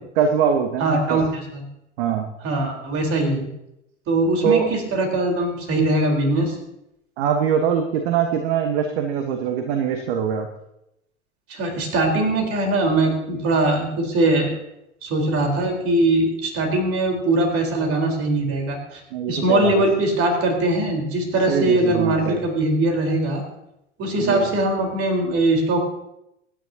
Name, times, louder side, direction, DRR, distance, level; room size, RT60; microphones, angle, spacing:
voice 1, 0.1-1.2 2.0-2.3 4.4-4.7 7.2-10.5 19.1-19.7 21.5-22.4 24.2-24.4, right 7 dB, 55° right, 6 dB, 1.3 m, -22 dB
voice 2, 0.8-1.6 2.4-3.5 4.1-6.6 11.5-14.5 15.0-19.0 19.3-23.4 24.0-25.9, right 2 dB, 40° right, 1 dB, 4.2 m, -21 dB
24.5 x 10.0 x 2.9 m, 0.85 s
figure-of-eight pair, 75°, 35 cm